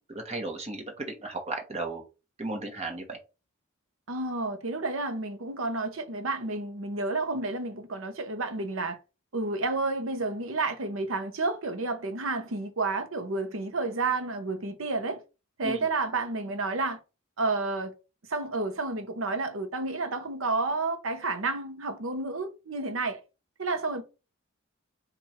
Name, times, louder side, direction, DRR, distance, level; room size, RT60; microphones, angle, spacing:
voice 1, 0.1-2.0 2.4-3.2 7.3-7.4 15.6-15.8, right 2 dB, 30° right, 1.2 m, -35 dB
voice 2, 4.1-9.0 9.3-15.2 15.6-17.0 17.4-17.9 18.3-23.2 23.6-24.0, right 3 dB, 70° right, 0.8 m, -30 dB
4.7 x 2.5 x 4.3 m
head